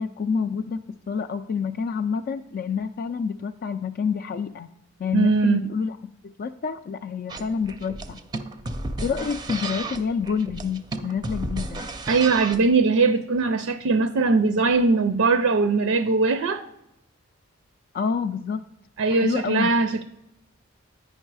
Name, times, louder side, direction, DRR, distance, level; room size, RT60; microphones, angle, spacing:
voice 1, 0.0-4.7 5.0-6.0 6.2-8.2 9.0-11.8 17.9-18.6 19.1-19.7, left 6 dB, 45° left, 8 dB, 0.3 m, -28 dB
voice 2, 5.1-5.7 12.1-16.6 19.0-20.0, right 4 dB, 80° right, 10 dB, 0.5 m, -21 dB
sound 1, 7.3-12.7, right 2 dB, 20° right, 0.5 m, -33 dB
8.8 x 5.4 x 4.7 m, 0.82 s
head